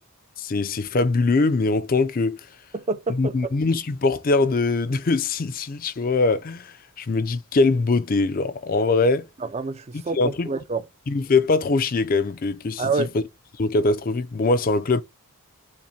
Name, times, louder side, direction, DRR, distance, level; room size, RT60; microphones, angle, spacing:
voice 1, 0.4-2.5 3.1-9.3 9.9-10.5 11.1-13.2 13.6-15.0, left 3 dB, 40° left, 0.4 m, -22 dB
voice 2, 2.7-3.6 9.4-10.8 12.8-13.1, right 3 dB, 30° right, 0.4 m, -27 dB
5.8 x 2.1 x 4.1 m
head